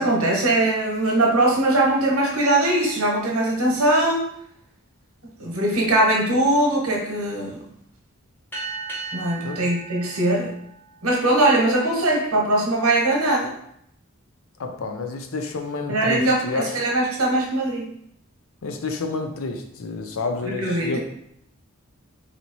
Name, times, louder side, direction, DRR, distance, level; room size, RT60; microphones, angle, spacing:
voice 1, 0.0-4.3 5.4-7.6 9.1-10.5 11.0-13.5 15.9-17.9 20.5-21.0, right 1 dB, 80° right, -1 dB, 1.1 m, -21 dB
Two Bells Ship Time, 8.5-11.5, right 4 dB, 10° left, 0.9 m, -36 dB
voice 2, 14.6-16.8 18.6-21.0, left 3 dB, 70° left, 5 dB, 0.5 m, -29 dB
4.0 x 2.8 x 3.0 m, 0.71 s
head